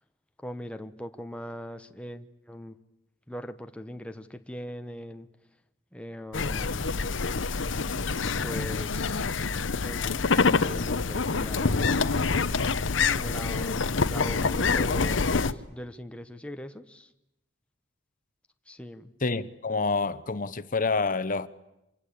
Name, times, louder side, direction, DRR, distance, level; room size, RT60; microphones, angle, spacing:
voice 1, 0.4-2.8 3.3-5.3 5.9-6.9 8.2-9.4 9.8-12.0 13.1-17.1 18.7-19.1, left 1 dB, 5° left, 1.0 m, -40 dB
sound 1, 6.3-15.5, left 4 dB, 85° left, 0.9 m, -26 dB
voice 2, 19.2-21.5, left 3 dB, 45° left, 1.0 m, -27 dB
26.5 x 23.0 x 8.6 m
head